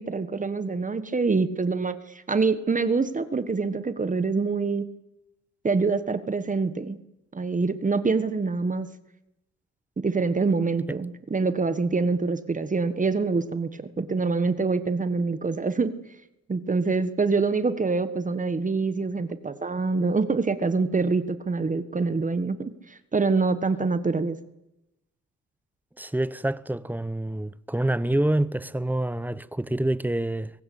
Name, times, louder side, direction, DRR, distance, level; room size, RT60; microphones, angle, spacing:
voice 1, 0.0-4.9 5.6-7.0 7.3-8.9 10.0-15.9 16.5-24.4, right 4 dB, 25° right, 1.5 m, -25 dB
voice 2, 26.0-30.5, right 1 dB, 5° right, 0.9 m, -27 dB
23.0 x 17.0 x 8.6 m
cardioid pair, 90°, 30 cm